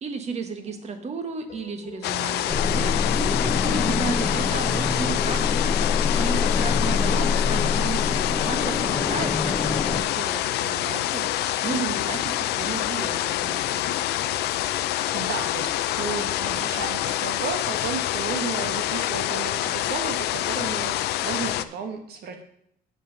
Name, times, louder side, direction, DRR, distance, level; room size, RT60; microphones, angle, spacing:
voice 1, 0.0-11.3 11.6-14.1, right 5 dB, 40° right, 7 dB, 1.4 m, -34 dB
sound 1, 0.6-15.4, left 6 dB, 40° left, 1.6 m, -50 dB
Big waterfall from stone bridge, 2.0-21.6, left 14 dB, 75° left, 0.5 m, -26 dB
sound 2, 2.5-10.0, left 5 dB, 20° left, 0.7 m, -25 dB
voice 2, 3.7-4.2 15.1-22.4, right 6 dB, 70° right, 5 dB, 1.5 m, -33 dB
7.5 x 5.5 x 6.4 m, 0.72 s
cardioid pair, 110°, 17 cm